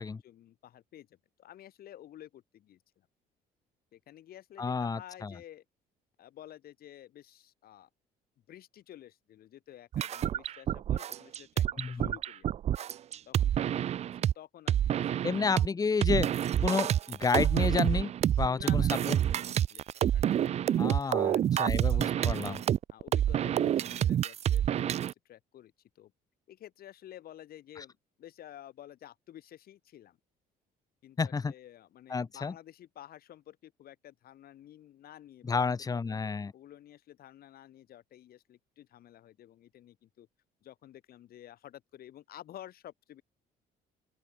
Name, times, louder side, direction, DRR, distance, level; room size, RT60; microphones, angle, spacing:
voice 1, 0.0-3.1 3.9-5.6 6.2-7.9 8.5-12.5 13.3-15.7 18.4-19.8 20.1-22.6 22.9-26.1 26.5-30.2 31.0-36.2 36.5-40.3 40.6-43.2, left 12 dB, 65° left, 6.3 m, -52 dB
voice 2, 4.6-5.3 11.8-12.1 15.2-16.3 16.6-18.1 18.4-19.2 20.8-22.6 31.2-31.5 32.1-32.5 35.4-36.5, left 5 dB, 20° left, 0.8 m, -31 dB
sound 1, 9.9-14.3 14.7-15.7 16.0-25.1, right 10 dB, 40° right, 0.4 m, -28 dB
open air
cardioid pair, 110°, 17 cm